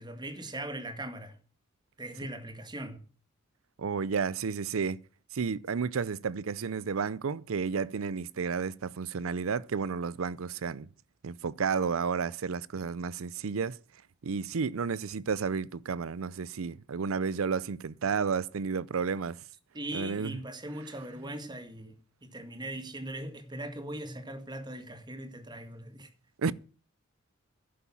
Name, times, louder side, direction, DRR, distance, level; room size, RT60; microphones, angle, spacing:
voice 1, 0.0-1.4 2.0-3.0 19.7-22.0 22.2-26.1, right 1 dB, 20° right, 1.9 m, -40 dB
voice 2, 3.8-5.0 5.3-10.9 11.2-13.8 14.2-19.4 19.9-20.3 26.4-26.5, right 5 dB, 80° right, 0.5 m, -31 dB
11.0 x 8.5 x 7.2 m
head